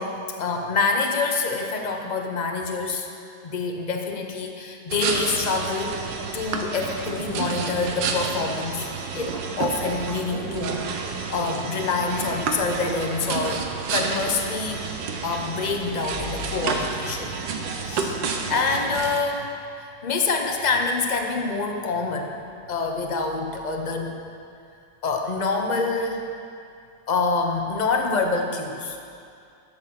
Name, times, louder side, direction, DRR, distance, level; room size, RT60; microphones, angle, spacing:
voice 1, 0.0-3.1 3.4-6.1 6.3-8.9 9.1-11.0 11.3-13.6 13.9-14.8 15.2-17.3 17.8-18.2 18.5-22.3 22.7-24.1 25.0-26.3 27.1-29.0, left 4 dB, 40° left, 3 dB, 0.6 m, -26 dB
sound 1, 4.9-19.2, right 5 dB, 75° right, 1.5 m, -30 dB
12.0 x 7.9 x 6.0 m, 2.4 s
omnidirectional pair, 2.0 m